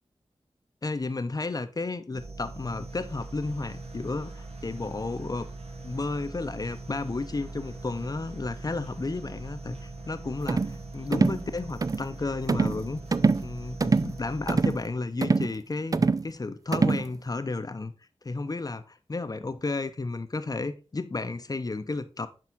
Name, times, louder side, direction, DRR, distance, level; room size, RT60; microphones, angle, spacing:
voice 1, 0.8-5.5 5.8-13.0 13.4-17.9 18.2-22.3, left 3 dB, 35° left, 0.7 m, -32 dB
sound 1, 2.1-15.1, right 2 dB, 75° right, 1.6 m, -42 dB
sound 2, 10.5-10.8 11.1-11.4 11.8-12.1 12.5-12.8 13.1-13.5 13.8-14.1 14.5-14.8 15.2-15.5 15.9-16.3 16.7-17.1, right 4 dB, 35° right, 0.4 m, -24 dB
7.5 x 4.7 x 4.0 m
wide cardioid pair, 60°, 10 cm